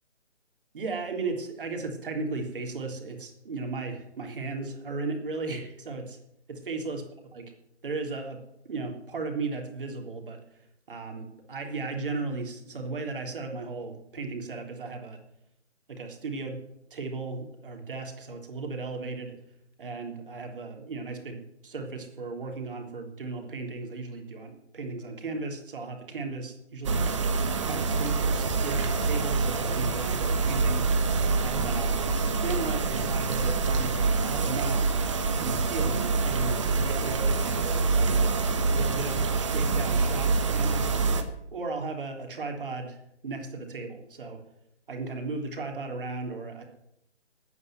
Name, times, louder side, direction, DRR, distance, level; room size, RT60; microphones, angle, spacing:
voice 1, 0.7-6.2 6.5-7.0 7.3-7.4 7.8-8.4 8.7-10.4 10.9-15.2 15.9-16.6 16.9-19.3 19.8-27.1 27.6-30.8 31.4-34.8 35.4-38.5 38.7-40.9 41.5-43.0 43.2-44.4 44.9-46.6, right 3 dB, 50° right, 3 dB, 3.6 m, -35 dB
sound 1, 26.8-41.2, right 4 dB, 25° right, 1.2 m, -26 dB
12.5 x 9.7 x 9.2 m, 0.81 s
hypercardioid pair, 165°, 35 cm